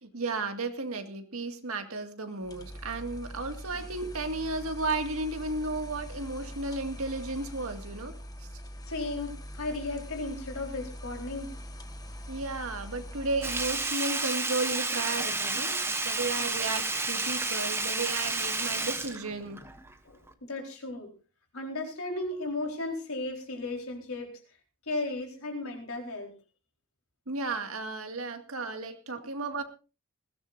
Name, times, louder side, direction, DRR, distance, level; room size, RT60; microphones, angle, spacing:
voice 1, 0.0-8.5 12.3-19.6 27.3-29.6, right 3 dB, 75° right, 6 dB, 2.1 m, -34 dB
sound 1, 2.4-14.0, equal, 20° left, 1.4 m, -43 dB
voice 2, 8.9-11.5 20.0-21.1 21.5-24.3 24.9-26.3, left 2 dB, 75° left, 2 dB, 4.3 m, -35 dB
Sink (filling or washing), 13.4-19.9 20.3-20.4, right 3 dB, 10° right, 1.3 m, -31 dB
20.5 x 16.5 x 2.6 m, 0.34 s
head